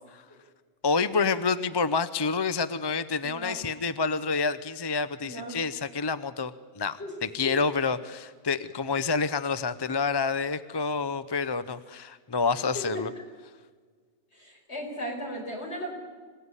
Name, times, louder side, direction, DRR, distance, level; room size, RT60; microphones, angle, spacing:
voice 1, 0.8-13.1, left 4 dB, 25° left, 14 dB, 0.6 m, -28 dB
voice 2, 3.2-3.6 5.2-5.6 7.0-7.1 7.4-7.5 12.7-13.0 14.3-15.9, equal, 60° left, 1 dB, 5.3 m, -36 dB
26.0 x 16.5 x 9.8 m, 1.5 s
omnidirectional pair, 1.3 m